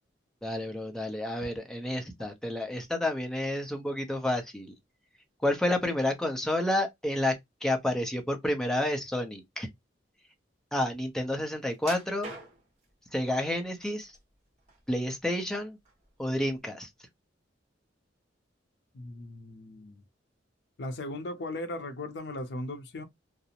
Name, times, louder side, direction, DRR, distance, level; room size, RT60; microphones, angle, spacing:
voice 1, 0.4-4.7 5.4-7.3 7.6-9.7 10.7-12.3 13.1-14.1 14.9-15.8 16.2-16.9, left 1 dB, 5° left, 0.5 m, -30 dB
sound 1, 11.8-12.8 13.5-14.2 14.6-15.5 15.9-16.0 16.6-16.7, right 2 dB, 35° right, 1.1 m, -44 dB
voice 2, 18.9-20.0 20.8-23.0, left 1 dB, 65° left, 0.6 m, -38 dB
2.4 x 2.0 x 2.7 m
head